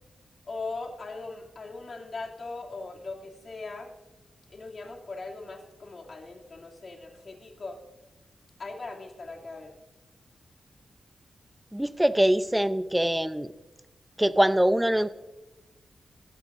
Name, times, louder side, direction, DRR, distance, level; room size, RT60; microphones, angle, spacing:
voice 1, 0.5-3.9 4.5-7.8 8.6-9.7, left 3 dB, 55° left, -1 dB, 2.8 m, -39 dB
voice 2, 11.7-13.5 14.2-15.1, right 1 dB, 5° right, 12 dB, 0.6 m, -23 dB
20.0 x 15.0 x 2.6 m, 1.0 s
wide cardioid pair, 100°, 0 cm